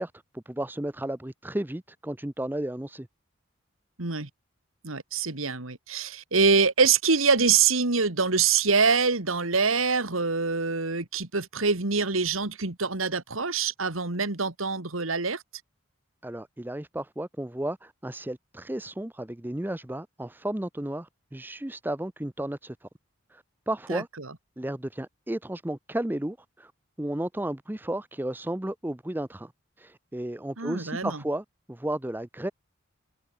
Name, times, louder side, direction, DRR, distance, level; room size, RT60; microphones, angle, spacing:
voice 1, 0.0-3.1 16.2-22.9 23.3-24.1 24.6-26.7 27.0-29.5 29.8-32.5, right 1 dB, 10° right, 0.6 m, -33 dB
voice 2, 4.0-4.3 4.8-15.4 23.9-24.3 30.6-31.2, right 5 dB, 85° right, 2.4 m, -25 dB
head